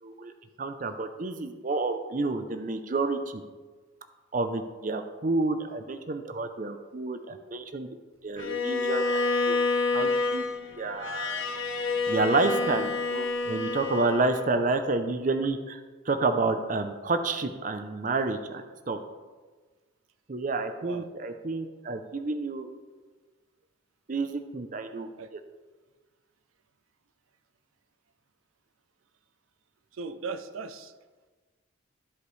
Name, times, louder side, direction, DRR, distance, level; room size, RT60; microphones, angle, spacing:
voice 1, 0.0-0.3 0.6-3.4 4.3-7.9 8.2-9.6 9.9-10.4 10.8-11.4 12.1-19.0 20.3-22.7 24.1-25.4, right 3 dB, 40° right, 8 dB, 0.5 m, -29 dB
Bowed string instrument, 8.4-14.6, left 3 dB, 75° left, 0.8 m, -28 dB
voice 2, 29.9-30.9, right 4 dB, 85° right, 10 dB, 0.5 m, -37 dB
14.0 x 5.0 x 3.2 m, 1.4 s
head